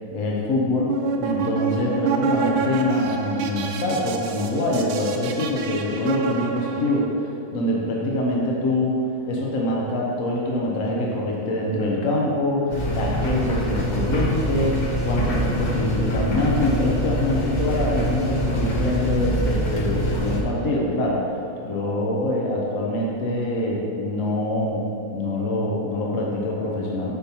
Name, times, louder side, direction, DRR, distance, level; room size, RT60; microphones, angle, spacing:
voice 1, 0.1-21.2 21.6-24.9 25.1-27.1, left 1 dB, 55° left, -3 dB, 0.9 m, -24 dB
sound 1, 0.7-7.1, right 5 dB, 90° right, 1.4 m, -28 dB
sound 2, 12.7-20.4, equal, 80° left, 0.4 m, -24 dB
7.9 x 5.4 x 2.9 m, 2.7 s
omnidirectional pair, 2.1 m